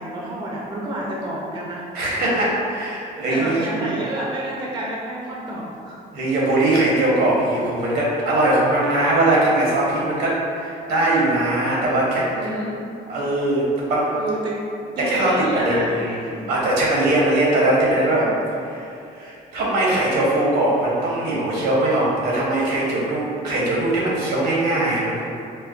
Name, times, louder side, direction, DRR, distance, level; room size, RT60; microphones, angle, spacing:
voice 1, 0.0-1.8 3.3-6.0 12.2-12.8 14.1-14.6 15.0-16.5 18.0-18.3, right 1 dB, 30° right, -4 dB, 0.5 m, -29 dB
voice 2, 1.9-4.0 6.1-12.5 13.1-14.1 15.0-18.3 18.6-18.8 19.1-25.5, right 1 dB, 70° right, -5 dB, 1.0 m, -21 dB
4.4 x 2.1 x 2.4 m, 2.6 s
cardioid pair, 110°, 17 cm